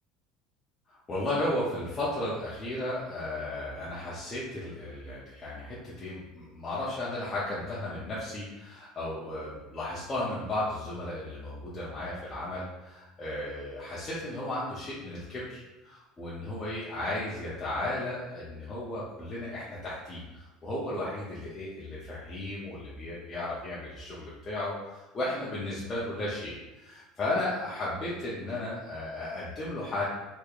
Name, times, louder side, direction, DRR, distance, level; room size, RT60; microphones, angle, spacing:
voice 1, 0.9-30.1, left 1 dB, 20° left, -8 dB, 0.5 m, -35 dB
3.4 x 3.2 x 2.4 m, 1.1 s
cardioid pair, 170°, 0 cm